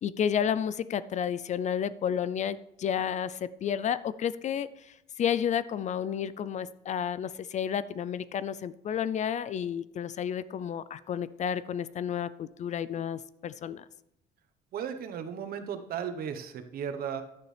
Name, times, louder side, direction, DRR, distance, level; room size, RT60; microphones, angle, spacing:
voice 1, 0.0-13.9, left 8 dB, 45° left, 17 dB, 0.4 m, -31 dB
voice 2, 14.7-17.2, right 8 dB, 60° right, 8 dB, 1.2 m, -35 dB
11.5 x 9.3 x 3.4 m, 0.82 s
cardioid pair, 110°, 17 cm